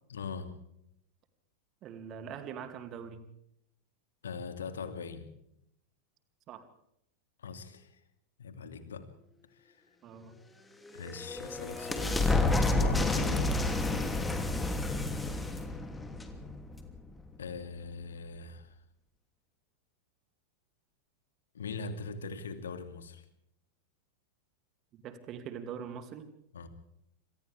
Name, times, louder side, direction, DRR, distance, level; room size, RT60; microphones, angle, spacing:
voice 1, 0.1-0.6 4.2-5.3 7.4-8.0 8.4-9.1 9.6-9.8 10.9-13.5 17.4-18.8 21.5-23.2 26.5-26.7, left 5 dB, 65° left, 8 dB, 2.6 m, -41 dB
voice 2, 1.8-3.2 6.5-6.7 10.0-10.4 14.4-14.8 24.9-26.3, right 7 dB, 35° right, 8 dB, 2.8 m, -43 dB
sound 1, 10.8-17.2, left 2 dB, 10° left, 2.9 m, -30 dB
27.5 x 26.5 x 3.6 m, 0.78 s
figure-of-eight pair, 90°, 0 cm